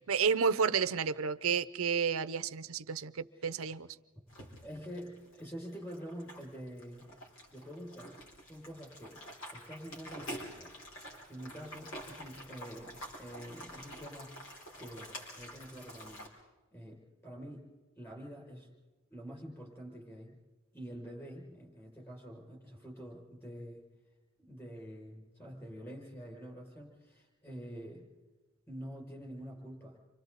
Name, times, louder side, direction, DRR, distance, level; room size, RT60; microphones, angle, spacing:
voice 1, 0.1-3.9, right 6 dB, 85° right, 0.7 m, -31 dB
sound 1, 4.3-16.3, equal, 85° left, 5.0 m, -48 dB
voice 2, 4.6-7.1 7.5-9.2 9.5-10.7 11.3-14.4 14.8-16.3 16.7-17.7 18.0-18.7 19.1-20.4 20.7-23.8 24.4-28.1 28.7-30.0, equal, 15° left, 6.3 m, -47 dB
30.0 x 25.0 x 4.1 m
head